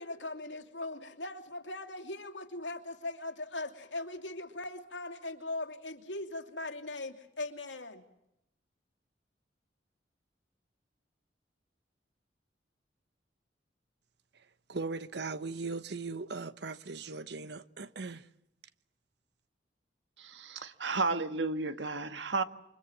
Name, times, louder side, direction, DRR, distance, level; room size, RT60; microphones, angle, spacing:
voice 1, 0.0-8.0, left 2 dB, 85° left, 2.9 m, -40 dB
voice 2, 14.7-18.3, right 3 dB, 65° right, 1.1 m, -39 dB
voice 3, 20.2-22.4, right 3 dB, 80° right, 1.6 m, -32 dB
28.0 x 24.5 x 7.4 m
head